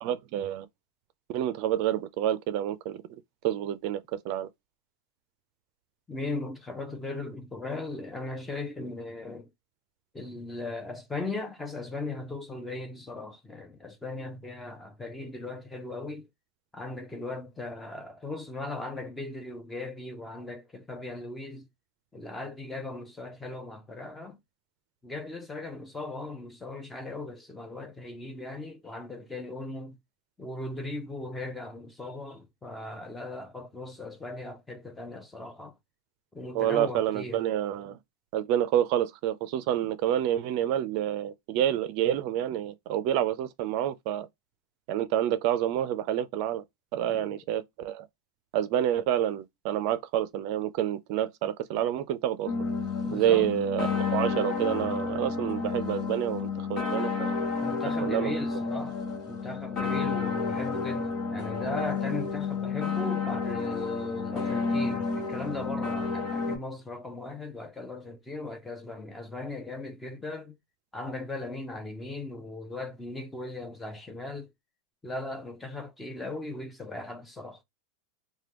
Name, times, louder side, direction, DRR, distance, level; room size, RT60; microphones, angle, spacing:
voice 1, 0.0-0.7 1.3-4.5 36.5-38.0 38.3-44.3 44.9-46.6 46.9-48.1 48.5-52.5 53.1-57.4 58.0-58.4, right 11 dB, 50° right, 0.4 m, -28 dB
voice 2, 6.1-9.5 10.1-16.3 16.7-21.7 22.1-24.4 25.0-30.0 30.4-35.8 36.3-37.4 47.1-47.4 53.0-53.5 57.6-59.0 59.3-70.5 70.9-74.5 75.0-77.6, left 2 dB, 10° left, 0.6 m, -38 dB
sound 1, 52.5-66.6, left 5 dB, 35° left, 1.2 m, -30 dB
3.3 x 2.2 x 2.9 m
supercardioid pair, 140°, 0 cm